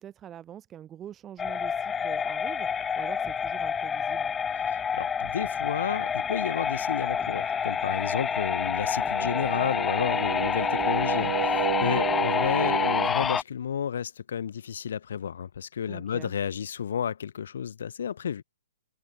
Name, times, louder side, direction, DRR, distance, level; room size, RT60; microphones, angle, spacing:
voice 1, 0.0-4.3 11.8-12.3 15.9-16.3, right 10 dB, 20° right, 3.6 m, -45 dB
sound 1, 1.4-13.4, left 7 dB, 15° left, 1.2 m, -28 dB
voice 2, 4.5-18.4, left 8 dB, 60° left, 4.0 m, -32 dB
sound 2, 8.1-13.1, right 12 dB, 50° right, 1.5 m, -33 dB
figure-of-eight pair, 120°, 0 cm